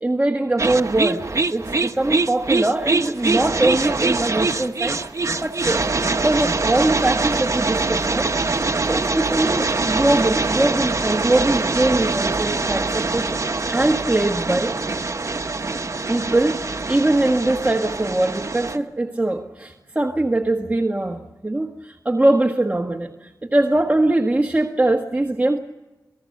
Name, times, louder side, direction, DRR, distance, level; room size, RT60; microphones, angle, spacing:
voice 1, 0.0-1.2 1.5-5.0 5.4-8.3 8.9-14.7 16.1-25.6, right 2 dB, 20° right, 2 dB, 1.5 m, -22 dB
sound 1, 0.6-18.8, right 3 dB, 50° right, 1.2 m, -23 dB
27.5 x 18.0 x 6.6 m, 1.1 s
wide cardioid pair, 70°, 7 cm